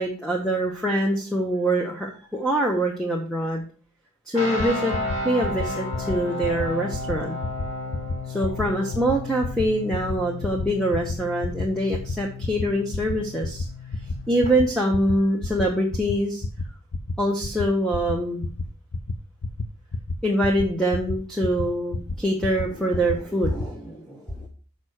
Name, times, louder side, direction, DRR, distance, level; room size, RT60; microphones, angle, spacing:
voice 1, 0.0-3.6 4.3-4.9 5.2-7.4 8.3-13.7 14.3-16.4 17.2-18.5 20.2-24.5, right 1 dB, 5° left, 0 dB, 0.9 m, -24 dB
sound 1, 4.3-14.5, left 2 dB, 30° left, 2.6 m, -33 dB
sound 2, 4.6-4.7 4.9-5.2 5.4-5.7 5.9-6.1 6.4-6.6 6.9-7.1 7.4-7.6 7.9-8.1 8.4-8.6 8.9-9.1 9.4-9.6 9.9-10.1 10.4-10.6 10.9-11.1 11.4-11.6 11.9-12.1 12.4-12.6 12.9-13.1 13.4-13.6 13.9-14.1 14.4-14.6 14.9-15.1 15.4-15.6 15.9-16.1 16.4-16.6 16.9-17.1 17.4-17.6 17.9-18.1 18.4-18.6 18.9-19.1 19.4-19.6 19.9-20.1 20.4-20.6 20.9-21.1 21.4-21.6 21.9-22.1 22.4-22.6 22.9-23.1 23.4-23.6, left 3 dB, 90° left, 0.7 m, -28 dB
6.2 x 5.5 x 6.3 m, 0.41 s
head